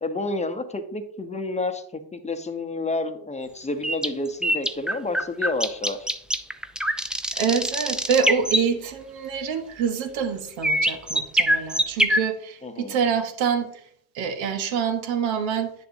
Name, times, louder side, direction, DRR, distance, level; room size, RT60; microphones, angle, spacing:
voice 1, 0.0-6.1 12.6-13.1, left 2 dB, 15° left, 8 dB, 0.9 m, -30 dB
sound 1, 3.8-8.6 10.6-12.2, equal, ahead, 0.4 m, -23 dB
voice 2, 7.3-13.7 14.1-15.7, right 7 dB, 75° right, 7 dB, 1.3 m, -26 dB
9.5 x 6.7 x 2.7 m, 0.64 s
supercardioid pair, 85°, 46 cm